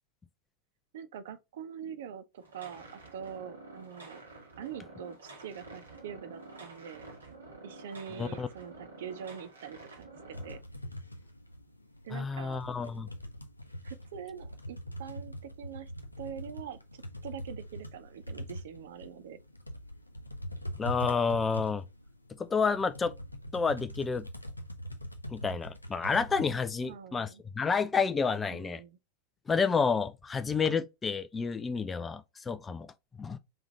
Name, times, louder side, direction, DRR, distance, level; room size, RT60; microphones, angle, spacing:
voice 1, 0.9-4.2 4.6-7.0 7.6-9.8 10.3-10.6 12.0-12.6 13.8-15.9 16.2-19.4 26.8-27.4 28.5-29.0, right 8 dB, 55° right, 0.6 m, -44 dB
sound 1, 2.4-10.6, right 2 dB, 75° right, 1.5 m, -49 dB
sound 2, 10.3-26.9, equal, 85° left, 0.6 m, -43 dB
voice 2, 12.1-13.1 20.8-21.8 22.4-23.1 23.5-24.3 25.3-27.3 27.5-28.8 29.5-33.4, left 5 dB, 15° left, 0.4 m, -30 dB
3.6 x 3.4 x 4.0 m
figure-of-eight pair, 90°, 0 cm